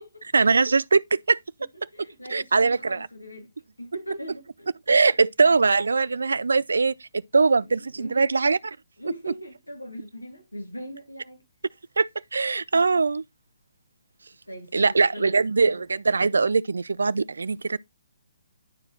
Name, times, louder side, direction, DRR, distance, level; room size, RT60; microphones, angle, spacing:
voice 1, 0.3-1.4 2.3-3.1 4.9-8.6 12.0-13.2 14.7-17.8, right 4 dB, 65° right, 0.4 m, -21 dB
voice 2, 1.9-3.5 3.8-5.0 7.6-8.3 9.0-11.4 14.5-15.3 15.7-15.8, equal, 85° left, 2.3 m, -40 dB
11.5 x 4.7 x 3.0 m
figure-of-eight pair, 135°, 0 cm